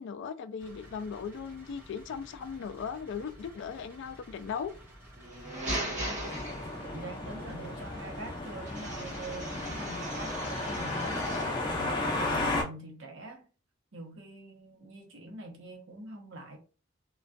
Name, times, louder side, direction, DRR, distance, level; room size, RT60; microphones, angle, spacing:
voice 1, 0.0-4.7, left 6 dB, 60° left, 0.3 m, -38 dB
sound 1, 0.6-10.8, right 1 dB, 10° right, 0.9 m, -52 dB
sound 2, 5.2-7.1 8.7-11.6, right 1 dB, 40° right, 1.1 m, -38 dB
sound 3, 6.2-12.6, left 2 dB, 25° left, 0.7 m, -34 dB
voice 2, 6.8-13.5 13.9-16.6, right 2 dB, 70° right, 0.8 m, -44 dB
2.5 x 2.2 x 2.2 m
head